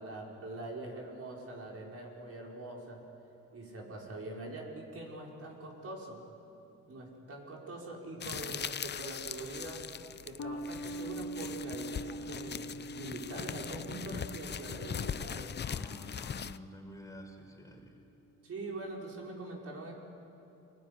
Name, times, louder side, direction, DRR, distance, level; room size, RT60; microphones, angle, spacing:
voice 1, 0.0-3.0 3.5-6.2 6.9-9.8 10.2-15.5 18.4-19.9, right 2 dB, 50° right, -1 dB, 5.4 m, -43 dB
sound 1, 8.2-16.6, left 8 dB, 35° left, 0.6 m, -40 dB
sound 2, 10.4-17.1, right 1 dB, 55° left, 2.1 m, -44 dB
voice 2, 15.6-18.0, equal, 10° left, 1 dB, 4.7 m, -49 dB
26.0 x 20.5 x 9.8 m, 2.8 s
cardioid pair, 90°, 30 cm